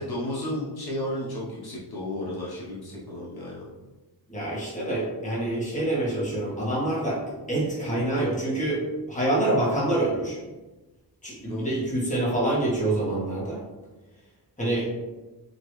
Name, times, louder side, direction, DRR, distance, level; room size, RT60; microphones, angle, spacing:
voice 1, 0.0-3.6 11.5-11.8, left 1 dB, 60° left, -6 dB, 1.0 m, -33 dB
voice 2, 4.3-7.2 7.5-10.4 11.2-13.6 14.6-14.9, right 1 dB, 20° left, -6 dB, 1.5 m, -26 dB
5.0 x 2.9 x 3.1 m, 1.1 s
wide cardioid pair, 160°, 42 cm